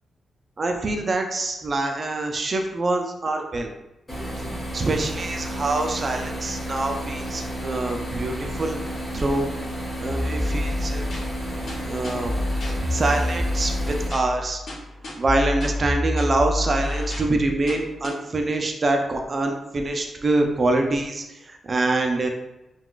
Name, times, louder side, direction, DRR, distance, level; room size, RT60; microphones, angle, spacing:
voice 1, 0.6-3.7 4.7-9.5 10.0-11.0 11.9-12.3 12.9-14.6 15.2-22.3, right 2 dB, 40° right, 3 dB, 0.4 m, -25 dB
sound 1, 4.1-14.1, equal, 15° left, 1.0 m, -32 dB
sound 2, 10.0-18.1, left 1 dB, 70° left, 0.9 m, -28 dB
3.7 x 2.2 x 2.3 m, 0.96 s
cardioid pair, 115°, 0 cm